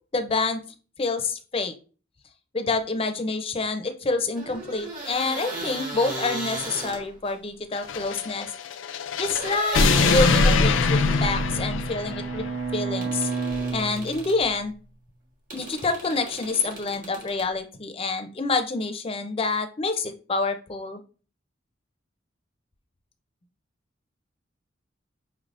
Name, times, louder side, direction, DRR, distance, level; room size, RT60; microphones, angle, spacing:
voice 1, 0.1-0.6 1.0-1.7 2.5-8.5 9.2-13.3 13.7-14.7 15.5-21.0, left 3 dB, 30° left, 8 dB, 0.5 m, -27 dB
sound 1, 4.4-7.3 9.3-11.3 13.0-14.4 15.5-17.5, right 2 dB, 45° right, 1.4 m, -35 dB
sound 2, 7.8-12.5, left 4 dB, 80° left, 0.4 m, -23 dB
Bowed string instrument, 10.2-14.6, right 4 dB, 75° right, 1.5 m, -32 dB
5.7 x 3.3 x 2.5 m, 0.37 s
head